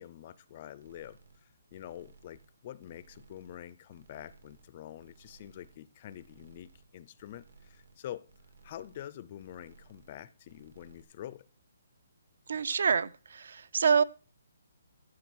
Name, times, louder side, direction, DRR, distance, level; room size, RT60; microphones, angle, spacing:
voice 1, 0.0-8.2 8.6-11.4, left 12 dB, 25° left, 0.5 m, -46 dB
sound 1, 0.8-1.4 1.7-2.5 2.8-3.6 3.9-4.7 5.0-5.8 6.1-6.9 7.2-7.9 8.3-9.1 9.4-10.2 10.5-11.0, right 4 dB, 75° right, 2.5 m, -60 dB
voice 2, 12.5-14.0, right 6 dB, 55° right, 0.7 m, -27 dB
14.5 x 6.3 x 6.2 m
hypercardioid pair, 180°, 0 cm